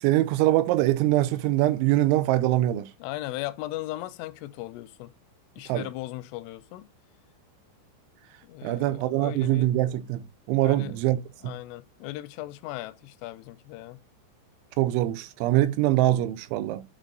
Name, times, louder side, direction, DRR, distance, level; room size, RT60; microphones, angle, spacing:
voice 1, 0.0-2.9 5.7-5.9 8.6-11.5 14.8-16.8, right 15 dB, 85° right, 2.9 m, -23 dB
voice 2, 3.0-5.1 5.6-6.9 8.4-9.7 10.6-11.0 11.4-14.0, left 16 dB, 90° left, 3.1 m, -37 dB
8.2 x 3.8 x 3.8 m
omnidirectional pair, 5.6 m